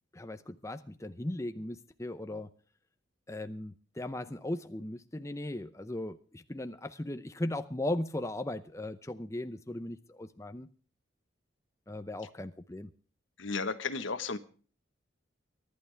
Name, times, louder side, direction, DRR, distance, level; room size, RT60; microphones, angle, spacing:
voice 1, 0.1-2.5 3.3-10.7 11.9-12.9, left 1 dB, 15° left, 9 dB, 0.6 m, -37 dB
voice 2, 13.4-14.4, left 4 dB, 75° left, 11 dB, 1.3 m, -33 dB
23.5 x 11.5 x 3.4 m, 0.41 s
head